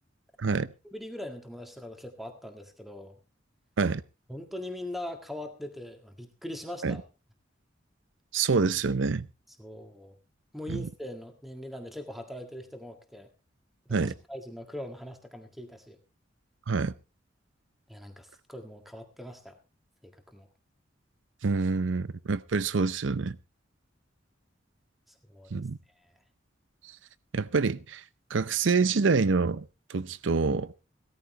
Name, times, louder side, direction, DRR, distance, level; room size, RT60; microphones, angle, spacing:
voice 1, 0.8-3.2 4.3-7.0 9.6-10.1 10.5-13.3 13.9-16.0 17.9-19.6 20.0-20.5 25.3-25.6, left 1 dB, ahead, 1.8 m, -41 dB
voice 2, 8.3-9.3 10.7-10.9 13.9-14.1 16.7-16.9 21.4-23.4 25.5-25.8 27.3-28.0 28.3-30.7, right 4 dB, 75° right, 0.6 m, -26 dB
17.0 x 13.5 x 3.3 m
head